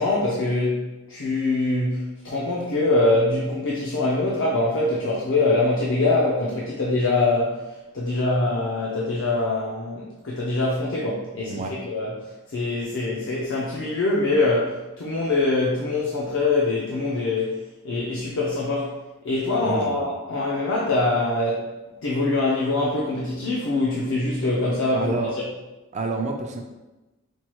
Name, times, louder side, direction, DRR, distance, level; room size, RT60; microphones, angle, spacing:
voice 1, 0.0-7.6 7.9-17.6 17.8-18.9 19.2-21.7 22.0-25.2, left 2 dB, 65° left, -4 dB, 0.5 m, -24 dB
voice 2, 19.6-20.0 24.9-25.4 25.9-26.6, right 3 dB, 35° right, 3 dB, 0.4 m, -28 dB
4.5 x 2.2 x 3.0 m, 1.1 s
head